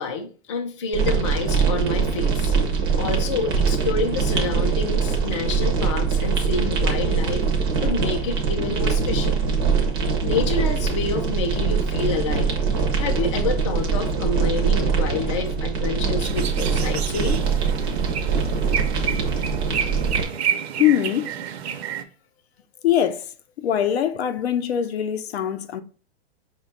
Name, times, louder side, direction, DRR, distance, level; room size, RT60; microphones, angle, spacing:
voice 1, 0.0-2.5 3.0-7.4 7.8-9.4 10.2-17.4, left 4 dB, 30° left, 0.4 m, -28 dB
sound 1, 0.9-20.3, right 5 dB, 25° right, 0.5 m, -23 dB
sound 2, 16.2-22.0, right 8 dB, 70° right, 0.6 m, -29 dB
voice 2, 20.8-21.3 21.8-22.0 22.8-23.3 23.6-25.8, left 10 dB, 75° left, 0.6 m, -22 dB
5.1 x 2.2 x 3.8 m
hypercardioid pair, 170°, 33 cm